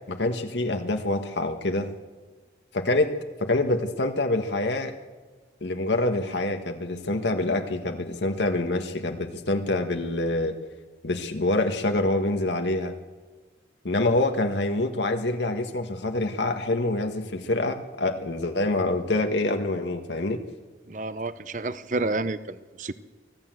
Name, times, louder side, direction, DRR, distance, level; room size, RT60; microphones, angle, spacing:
voice 1, 0.1-1.9 2.7-3.1 3.4-4.9 5.6-10.5 11.0-12.9 13.8-20.4, left 2 dB, 85° left, 5 dB, 1.6 m, -26 dB
voice 2, 20.9-22.9, right 2 dB, 45° right, 14 dB, 0.7 m, -30 dB
24.5 x 15.5 x 7.8 m, 1.4 s
head